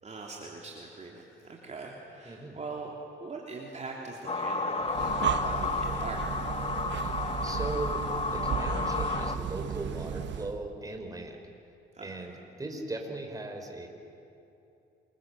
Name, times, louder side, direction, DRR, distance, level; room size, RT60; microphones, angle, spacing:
voice 1, 0.0-2.9 3.2-6.4 11.9-12.1, right 3 dB, 35° right, -1 dB, 3.3 m, -41 dB
voice 2, 2.2-2.6 7.0-11.4 12.0-13.9, right 2 dB, 20° right, 3 dB, 4.4 m, -38 dB
sound 1, 4.3-9.4, left 4 dB, 30° left, 1.3 m, -32 dB
Breathing, 4.8-10.6, right 8 dB, 65° right, 1.4 m, -34 dB
27.5 x 22.0 x 7.7 m, 2.8 s
cardioid pair, 90°, 20 cm